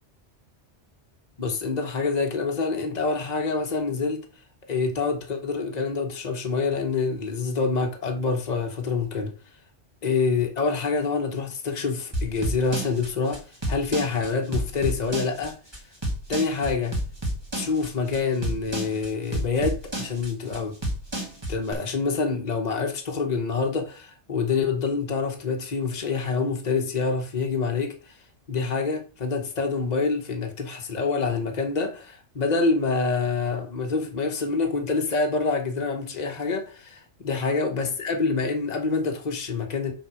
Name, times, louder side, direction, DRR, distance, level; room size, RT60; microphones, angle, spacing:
voice 1, 1.4-4.2 4.7-9.3 10.0-15.5 16.3-17.0 17.5-20.8 21.5-28.2 28.5-39.9, left 4 dB, 40° left, 1.3 m, -26 dB
sound 1, 12.1-21.7, right 1 dB, 20° right, 2.2 m, -30 dB
6.1 x 4.5 x 6.2 m
omnidirectional pair, 1.2 m